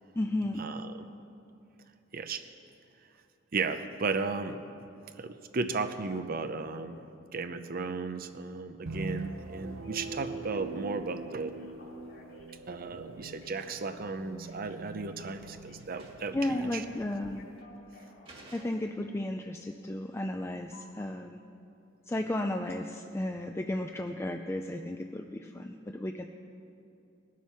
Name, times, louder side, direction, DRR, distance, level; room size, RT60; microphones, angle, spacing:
voice 1, 0.2-0.7 16.3-17.5 18.5-21.4 22.1-26.2, left 1 dB, 15° left, 4 dB, 0.4 m, -34 dB
voice 2, 2.1-2.4 3.5-4.6 5.2-7.0 7.3-11.5 12.7-16.8, right 4 dB, 45° right, 9 dB, 0.6 m, -35 dB
sound 1, 8.9-17.6, right 3 dB, 90° right, 0.6 m, -43 dB
Telephone, 9.6-19.1 20.7-20.8, left 2 dB, 55° left, 2.6 m, -55 dB
sound 2, 12.0-12.3 12.7-14.0 15.0-15.1 15.4-15.5 15.7-16.4 16.7-16.8 17.6-17.7 18.2-19.2, right 2 dB, 30° right, 1.8 m, -55 dB
20.0 x 7.4 x 5.7 m, 2.8 s
head